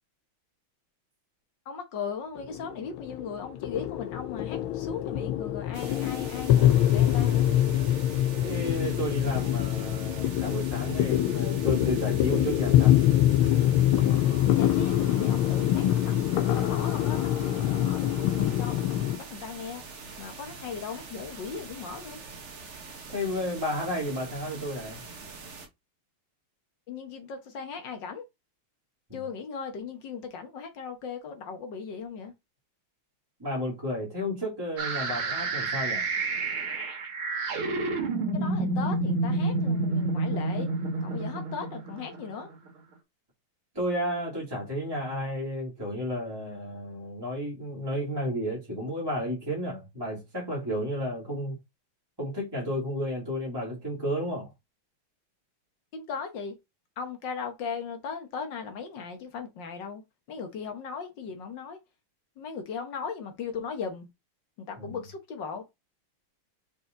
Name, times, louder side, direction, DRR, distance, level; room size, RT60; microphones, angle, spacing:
voice 1, 1.7-7.5 14.5-19.8 20.2-22.2 26.9-28.2 29.1-32.3 38.3-40.7 41.0-42.5 55.9-56.6 57.0-60.0 60.3-61.8 62.4-64.1 64.6-65.6, left 6 dB, 60° left, 1.8 m, -38 dB
sound 1, 2.4-19.2, left 12 dB, 80° left, 1.5 m, -25 dB
sound 2, 5.7-25.7, right 4 dB, 40° right, 1.1 m, -44 dB
voice 2, 8.4-13.0 23.1-25.0 33.4-36.0 43.7-51.6 52.2-54.5 64.8-65.0, equal, 10° right, 2.6 m, -32 dB
sound 3, 34.8-42.7, right 3 dB, 75° right, 2.5 m, -29 dB
5.3 x 4.5 x 3.9 m
omnidirectional pair, 2.3 m